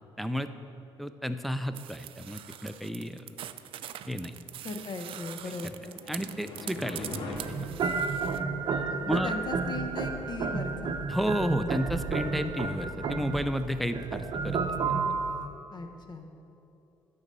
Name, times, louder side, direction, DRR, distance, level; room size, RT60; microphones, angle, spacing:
voice 1, 0.2-0.5 1.0-3.2 4.1-4.3 6.1-7.7 9.1-9.3 11.1-14.9, equal, ahead, 9 dB, 0.4 m, -32 dB
sound 1, 1.7-8.4, right 11 dB, 60° right, 0.4 m, -43 dB
voice 2, 4.6-6.0 8.9-11.0 15.7-16.3, left 3 dB, 45° left, 6 dB, 0.9 m, -38 dB
sound 2, 5.4-7.4, left 2 dB, 65° left, 1.9 m, -40 dB
sound 3, 7.4-15.5, right 5 dB, 45° right, 0.8 m, -31 dB
11.5 x 4.0 x 7.7 m, 2.8 s
cardioid pair, 95°, 10 cm